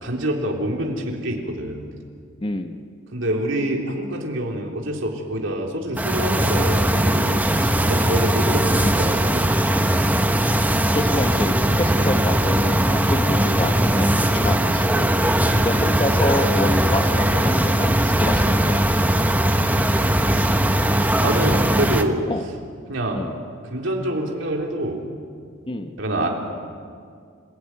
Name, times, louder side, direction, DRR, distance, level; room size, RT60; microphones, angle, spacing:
voice 1, 0.0-1.9 3.1-7.5 7.9-9.5 15.5-15.7 21.2-22.2 22.9-23.2 23.7-25.0 26.0-26.3, right 1 dB, 65° right, 0 dB, 3.8 m, -26 dB
voice 2, 2.4-2.8 7.6-7.8 8.1-8.2 10.9-15.1 15.6-19.0 22.3-22.4 23.1-23.3 25.7-25.9, left 1 dB, 25° left, 7 dB, 1.1 m, -27 dB
sound 1, 6.0-22.0, right 1 dB, 10° right, 1.1 m, -19 dB
29.0 x 16.5 x 9.7 m, 2.2 s
head